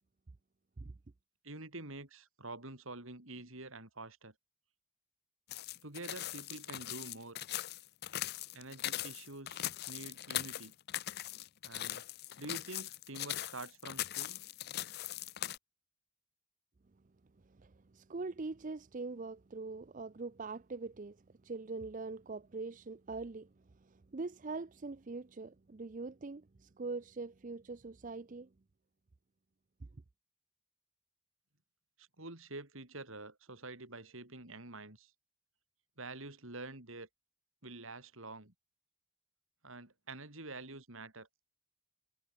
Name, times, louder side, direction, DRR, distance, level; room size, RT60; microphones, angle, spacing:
voice 1, 1.4-4.3 5.8-7.4 8.5-10.7 11.6-12.0 12.4-14.4 32.0-35.1 36.0-37.1 37.6-38.5 39.6-41.3, right 2 dB, 65° right, 4.2 m, -47 dB
sound 1, 5.5-15.6, left 13 dB, 45° left, 0.5 m, -40 dB
voice 2, 17.5-23.5 23.8-28.5, right 3 dB, 35° right, 0.5 m, -43 dB
head